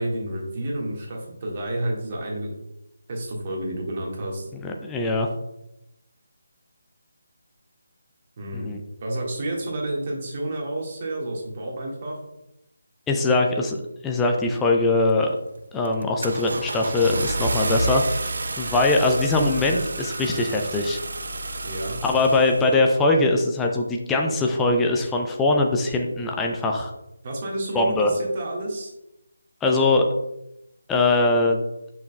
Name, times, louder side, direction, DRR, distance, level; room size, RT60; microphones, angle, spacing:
voice 1, 0.0-2.6 3.1-4.5 8.4-12.2 21.6-22.0 27.2-28.9, right 1 dB, 30° right, -1 dB, 1.6 m, -30 dB
voice 2, 4.6-5.3 8.5-8.8 13.1-15.3 15.7-18.0 18.6-21.0 22.0-26.9 27.7-28.1 29.6-30.1 30.9-31.6, left 2 dB, 5° left, 1 dB, 0.5 m, -21 dB
Car / Engine starting, 15.1-15.4 15.9-22.8, right 2 dB, 50° right, 0.6 m, -29 dB
8.1 x 6.1 x 2.3 m, 0.86 s
figure-of-eight pair, 155°, 0 cm